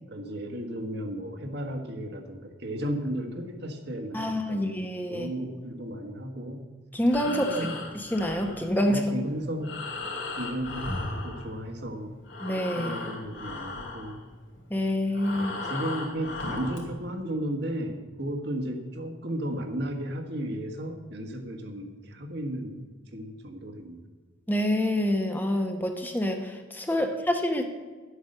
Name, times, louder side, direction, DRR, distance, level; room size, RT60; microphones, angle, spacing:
voice 1, 0.0-4.8 5.1-6.6 7.2-7.8 8.9-9.8 10.4-10.9 11.2-12.1 12.8-14.2 15.3-24.0, right 1 dB, 55° right, 4 dB, 1.5 m, -34 dB
voice 2, 4.1-5.3 6.9-7.6 7.9-9.0 12.4-13.0 14.7-15.5 24.5-27.7, left 1 dB, 10° left, 4 dB, 0.8 m, -27 dB
Breathing, 6.9-11.9 12.2-16.9, left 2 dB, 75° left, 2.8 m, -37 dB
11.0 x 8.2 x 6.6 m, 1.4 s
head